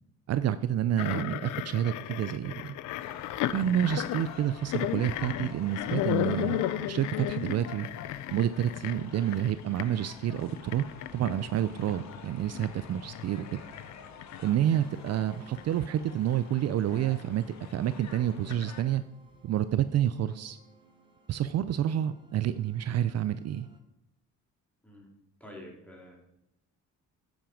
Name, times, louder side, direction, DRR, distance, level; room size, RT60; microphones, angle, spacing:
voice 1, 0.3-2.7 3.5-7.9 8.3-10.8 11.1-13.6 14.4-17.4 17.7-19.0 19.4-20.6 21.3-23.7, right 11 dB, 60° right, 13 dB, 0.5 m, -29 dB
sound 1, 1.0-9.9 10.2-15.8 16.1-16.6 17.2-17.3 18.5-19.0, left 13 dB, 85° left, 0.5 m, -34 dB
sound 2, 3.0-18.8, left 6 dB, 65° left, 1.3 m, -48 dB
sound 3, 14.7-23.8, right 2 dB, 15° right, 1.6 m, -58 dB
voice 2, 25.4-26.2, left 1 dB, 5° left, -2 dB, 3.3 m, -47 dB
9.0 x 7.4 x 5.0 m, 0.84 s
cardioid pair, 90°, 30 cm